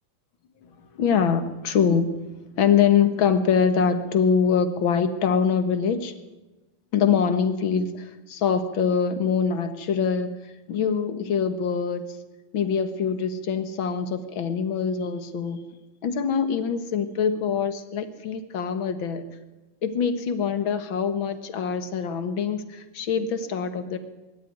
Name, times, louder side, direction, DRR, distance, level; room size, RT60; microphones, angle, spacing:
voice 1, 0.9-2.1 2.6-6.1 6.9-12.1 12.5-15.6 16.0-19.3 19.8-24.0, left 6 dB, 50° left, 9 dB, 1.7 m, -24 dB
22.0 x 13.5 x 9.6 m, 1.1 s
omnidirectional pair, 3.9 m